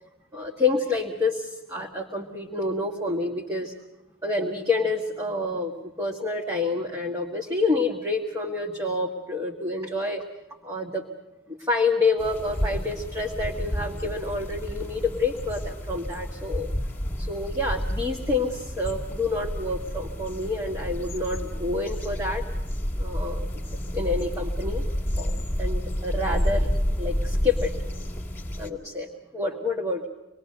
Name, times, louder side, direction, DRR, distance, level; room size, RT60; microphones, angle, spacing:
voice 1, 0.3-3.7 4.2-5.7 6.0-10.2 10.6-11.1 11.5-16.7 17.2-22.4 23.0-24.8 25.2-26.7 27.0-27.7 28.6-30.1, left 3 dB, 15° right, -1 dB, 1.7 m, -28 dB
sound 1, 12.2-28.7, equal, 10° left, 2.2 m, -30 dB
26.0 x 20.5 x 6.6 m, 1.0 s
head